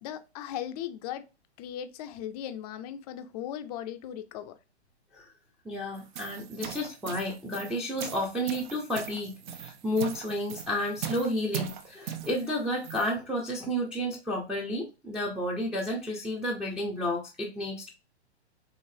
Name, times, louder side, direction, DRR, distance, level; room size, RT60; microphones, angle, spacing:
voice 1, 0.0-1.2 1.6-4.6, left 10 dB, 35° left, 0.6 m, -38 dB
voice 2, 5.6-17.9, equal, ahead, 0.7 m, -31 dB
sound 1, 5.9-13.2, right 9 dB, 45° right, 0.7 m, -40 dB
5.0 x 3.1 x 2.7 m
hypercardioid pair, 130°, 34 cm